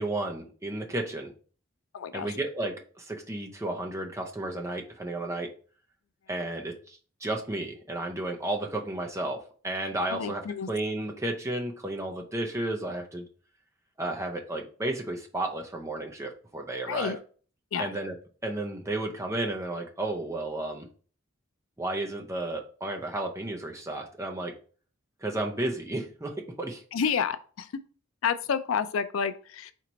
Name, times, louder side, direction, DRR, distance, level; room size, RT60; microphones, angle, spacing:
voice 1, 0.0-1.3 2.1-5.5 6.3-10.4 10.7-13.2 14.0-17.1 17.8-18.2 18.4-20.9 21.8-24.5 25.2-26.8, right 2 dB, 15° right, 2 dB, 0.6 m, -33 dB
voice 2, 1.9-2.3 10.1-10.7 16.9-17.2 17.7-17.9 26.9-27.7 28.2-29.7, left 7 dB, 85° left, 11 dB, 0.4 m, -29 dB
4.5 x 2.9 x 3.9 m, 0.41 s
head